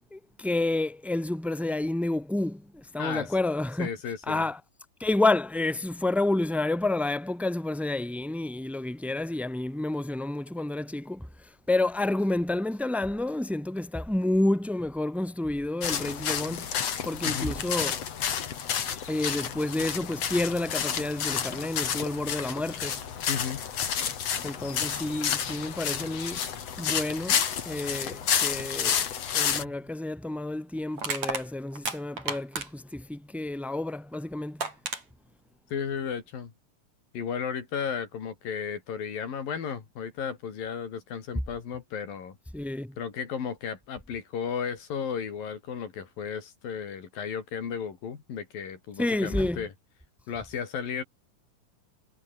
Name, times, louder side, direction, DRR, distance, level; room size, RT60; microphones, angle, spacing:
voice 1, 0.1-3.9 4.3-4.6 5.0-16.7 17.0-18.0 19.1-23.0 24.4-26.4 26.8-29.1 29.3-34.7 42.5-42.9 49.0-49.6, left 2 dB, ahead, 1.5 m, -29 dB
voice 2, 3.0-3.3 3.8-4.5 17.2-17.6 23.3-23.6 35.7-36.5 37.1-42.4 43.0-49.7 50.3-51.0, left 7 dB, 75° left, 5.0 m, -34 dB
sound 1, 15.8-29.6, left 8 dB, 50° left, 3.0 m, -30 dB
Crushing, 29.6-29.8 31.0-32.9 34.1-34.2 34.6-35.0, right 4 dB, 50° right, 6.8 m, -32 dB
omnidirectional pair, 4.1 m